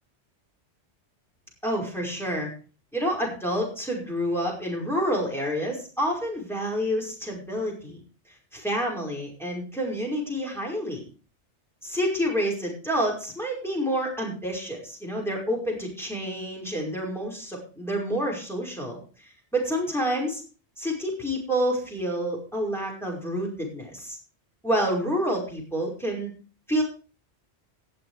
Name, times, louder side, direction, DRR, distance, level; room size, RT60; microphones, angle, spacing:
voice 1, 1.6-2.5 2.9-8.0 8.5-11.0 11.8-20.4 20.8-24.2 24.6-26.3 26.7-26.8, equal, ahead, -2 dB, 5.4 m, -28 dB
18.0 x 7.7 x 4.9 m, 0.37 s
omnidirectional pair, 1.2 m